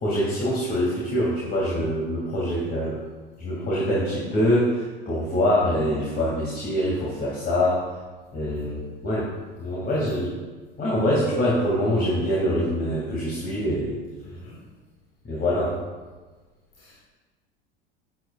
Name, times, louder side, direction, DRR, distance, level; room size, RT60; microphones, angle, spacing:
voice 1, 0.0-3.0 3.4-7.8 8.3-9.3 9.6-10.3 10.8-14.0 15.2-15.8, equal, 30° left, -5 dB, 2.7 m, -24 dB
voice 2, 14.2-14.6 16.8-17.0, equal, 70° left, -5 dB, 2.3 m, -46 dB
11.5 x 9.7 x 2.6 m, 1.3 s
figure-of-eight pair, 70°, 29 cm